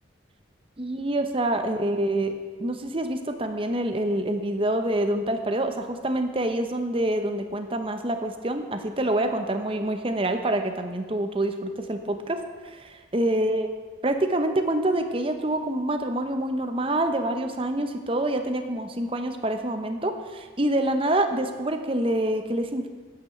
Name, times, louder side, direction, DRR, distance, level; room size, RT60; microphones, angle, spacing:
voice 1, 0.8-2.3 2.6-13.7 14.0-22.9, right 1 dB, 30° right, 6 dB, 0.8 m, -26 dB
9.6 x 8.8 x 7.1 m, 1.4 s
head